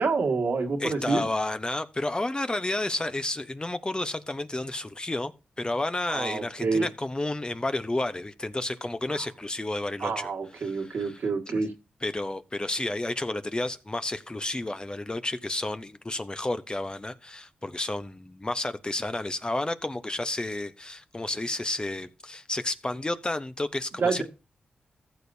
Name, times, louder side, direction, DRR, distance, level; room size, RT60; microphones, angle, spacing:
voice 1, 0.0-1.3 6.1-6.9 9.1-9.2 10.0-11.7 24.0-24.2, right 4 dB, 75° right, 1.9 m, -27 dB
voice 2, 0.8-5.3 5.6-10.3 10.6-11.2 11.5-11.6 12.0-24.2, left 2 dB, 25° left, 0.9 m, -31 dB
15.0 x 6.8 x 2.7 m
cardioid pair, 45°, 3 cm